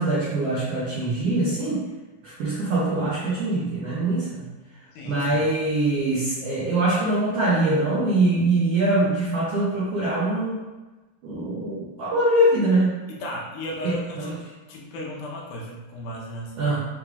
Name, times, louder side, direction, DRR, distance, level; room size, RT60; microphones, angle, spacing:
voice 1, 0.0-1.8 2.2-4.4 5.0-10.6 11.2-12.9 14.2-14.3 16.6-16.8, right 2 dB, 75° right, -8 dB, 1.4 m, -23 dB
voice 2, 4.9-5.4 13.1-14.4 14.7-16.8, left 1 dB, 90° left, -3 dB, 2.7 m, -35 dB
6.5 x 3.2 x 2.4 m, 1.2 s
omnidirectional pair, 4.1 m